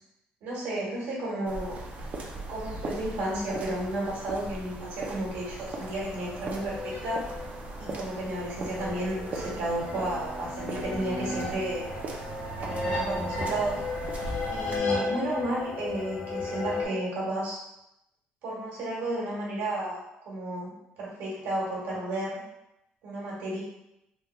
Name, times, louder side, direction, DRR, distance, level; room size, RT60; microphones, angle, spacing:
voice 1, 0.4-1.8 2.5-7.2 7.8-11.9 12.6-13.8 14.5-17.6 18.4-22.4 23.0-23.6, right 1 dB, 75° right, -5 dB, 1.4 m, -32 dB
sound 1, 1.5-14.8, right 2 dB, 40° right, 0.5 m, -39 dB
sound 2, 5.8-16.9, left 2 dB, 70° left, 1.3 m, -34 dB
3.3 x 2.2 x 3.0 m, 0.86 s
cardioid pair, 105°, 4 cm